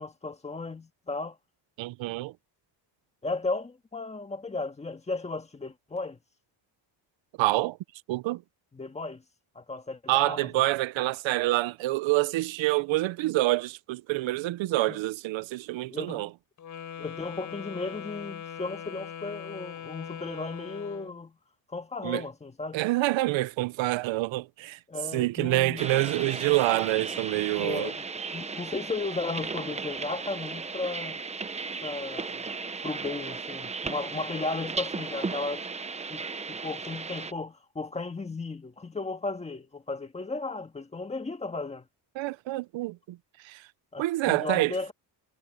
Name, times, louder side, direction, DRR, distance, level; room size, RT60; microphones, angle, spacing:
voice 1, 0.0-1.4 3.2-6.2 8.7-9.2 9.5-10.5 14.9-15.0 15.9-16.2 17.0-21.4 21.7-22.8 24.9-25.8 27.6-28.0 28.3-31.2 31.8-32.5 32.8-35.6 36.1-41.9 43.9-44.9, left 3 dB, 15° left, 1.7 m, -35 dB
voice 2, 1.8-2.3 7.4-7.8 8.1-8.4 10.1-16.3 22.0-22.2 22.7-24.8 25.1-27.9 42.2-43.2 43.4-43.7 44.0-44.9, right 18 dB, 90° right, 0.7 m, -27 dB
Wind instrument woodwind instrument, 16.6-21.2, left 8 dB, 40° left, 5.8 m, -41 dB
sound 1, 25.8-37.3, right 4 dB, 15° right, 0.7 m, -36 dB
cardioid pair, 175°, 44 cm